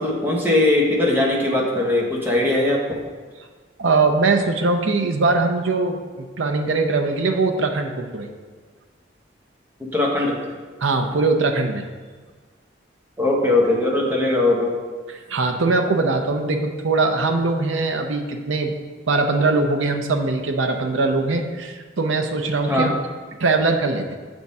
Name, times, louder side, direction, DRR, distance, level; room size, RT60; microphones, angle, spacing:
voice 1, 0.0-3.0 9.9-10.4 13.2-14.7 22.7-22.9, left 2 dB, 10° right, -3 dB, 0.9 m, -20 dB
voice 2, 3.8-8.3 10.8-11.8 15.3-18.7 19.1-22.9 23.4-24.1, right 3 dB, 80° right, 4 dB, 0.6 m, -21 dB
7.6 x 3.6 x 4.1 m, 1.4 s
head